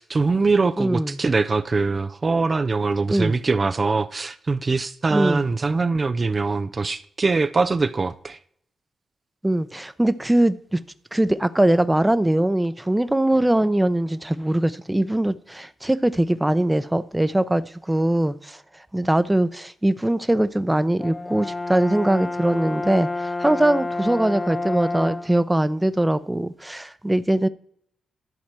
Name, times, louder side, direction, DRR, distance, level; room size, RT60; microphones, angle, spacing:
voice 1, 0.0-8.4, right 4 dB, 45° right, 0.6 m, -22 dB
voice 2, 0.8-1.2 3.1-3.4 5.1-5.5 9.4-10.8 11.1-18.6 18.9-27.5, right 1 dB, 15° right, 0.8 m, -21 dB
Brass instrument, 21.0-25.4, left 2 dB, 30° left, 1.1 m, -29 dB
12.0 x 4.3 x 7.6 m
supercardioid pair, 45°, 0 cm